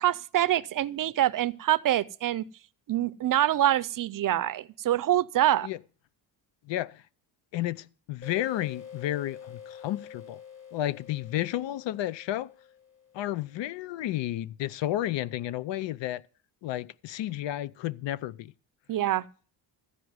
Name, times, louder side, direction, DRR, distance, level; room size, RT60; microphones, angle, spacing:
voice 1, 0.0-2.5 2.9-5.7 18.9-19.3, right 12 dB, 50° right, 0.5 m, -25 dB
voice 2, 6.7-7.0 7.5-10.4 10.7-12.5 13.1-16.2 16.6-18.5, left 13 dB, 80° left, 0.6 m, -32 dB
sound 1, 8.2-13.5, left 7 dB, 35° left, 1.6 m, -47 dB
14.5 x 5.0 x 9.4 m
cardioid pair, 140°, 44 cm